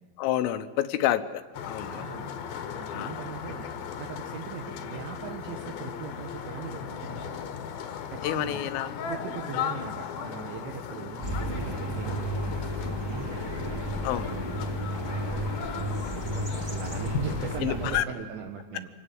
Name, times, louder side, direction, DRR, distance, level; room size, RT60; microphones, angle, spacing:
voice 1, 0.2-2.1 2.9-3.2 8.2-8.9 14.0-14.3 17.6-18.1, left 12 dB, 85° left, 10 dB, 3.5 m, -29 dB
sound 1, 1.5-17.6, left 7 dB, 65° left, 2.8 m, -37 dB
voice 2, 1.8-2.3 2.7-3.7 4.0-7.4 7.8-8.7 9.1-18.9, right 7 dB, 70° right, 3 dB, 3.5 m, -40 dB
sound 2, 11.2-18.0, equal, 10° right, 1.2 m, -32 dB
26.5 x 18.5 x 7.9 m, 1.4 s
omnidirectional pair, 5.8 m